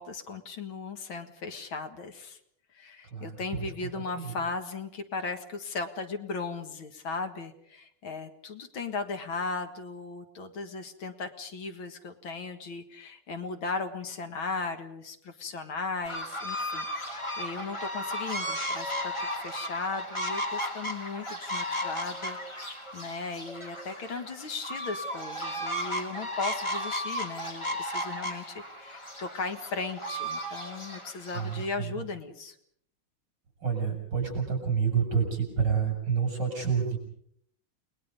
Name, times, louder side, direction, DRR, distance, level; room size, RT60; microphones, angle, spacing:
voice 1, 0.0-2.4 2.7-32.6, left 4 dB, 70° left, 7 dB, 2.4 m, -37 dB
voice 2, 3.1-3.6 4.2-4.3 31.3-31.5 33.6-37.0, right 6 dB, 55° right, 3 dB, 7.1 m, -28 dB
sound 1, 16.1-31.7, equal, 15° left, 2.3 m, -35 dB
29.5 x 20.5 x 5.3 m, 0.69 s
omnidirectional pair, 2.3 m